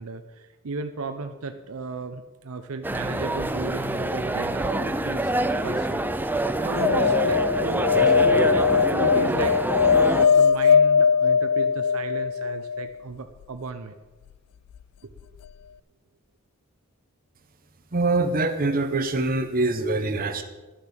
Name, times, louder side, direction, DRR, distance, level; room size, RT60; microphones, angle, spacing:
voice 1, 0.0-6.1 6.6-13.9 15.0-15.1, right 4 dB, 70° right, 7 dB, 0.6 m, -35 dB
sound 1, 2.8-10.3, right 1 dB, 10° right, 0.4 m, -26 dB
sound 2, 6.7-12.9 15.2-15.3 15.5-15.6, left 6 dB, 90° left, 0.3 m, -20 dB
voice 2, 17.9-20.4, right 2 dB, 40° right, 7 dB, 0.9 m, -24 dB
12.0 x 6.9 x 6.5 m, 1.2 s
head